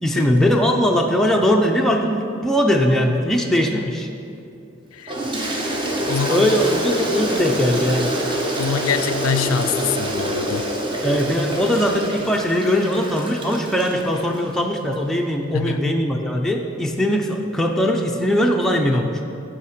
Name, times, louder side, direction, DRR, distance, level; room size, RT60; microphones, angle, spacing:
voice 1, 0.0-4.1 6.3-8.2 11.0-19.2, equal, ahead, 1 dB, 0.4 m, -20 dB
Toilet flush, 5.1-14.4, right 1 dB, 25° right, 0.8 m, -26 dB
voice 2, 6.1-6.5 8.6-10.7 15.5-15.9, left 6 dB, 85° left, 12 dB, 0.4 m, -24 dB
8.3 x 5.6 x 5.0 m, 2.7 s
head